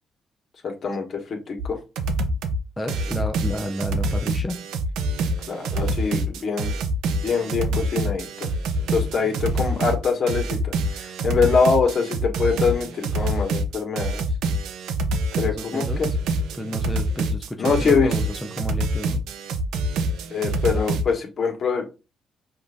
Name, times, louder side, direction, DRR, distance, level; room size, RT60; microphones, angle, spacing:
voice 1, 0.6-1.8 5.5-6.8 7.2-8.5 8.9-14.2 15.4-16.1 17.6-18.1 20.3-21.8, left 5 dB, 50° left, 3 dB, 1.5 m, -24 dB
sound 1, 1.6-1.7 2.0-2.6 2.9-21.0, right 2 dB, 85° right, 0.6 m, -26 dB
voice 2, 2.8-4.6 15.4-16.1 16.5-19.2, left 1 dB, 10° left, 2 dB, 0.7 m, -31 dB
5.4 x 2.6 x 3.6 m, 0.30 s
cardioid pair, 90°, 0 cm